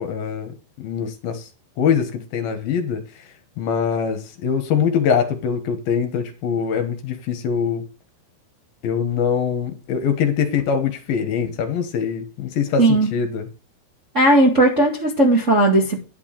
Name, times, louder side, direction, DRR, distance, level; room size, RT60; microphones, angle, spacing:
voice 1, 0.0-1.5 1.8-3.2 3.6-7.8 8.8-13.5, left 7 dB, 70° left, 3.0 m, -23 dB
voice 2, 12.8-13.1 14.1-16.0, right 1 dB, 30° right, 1.3 m, -16 dB
11.0 x 4.7 x 7.4 m
omnidirectional pair, 4.7 m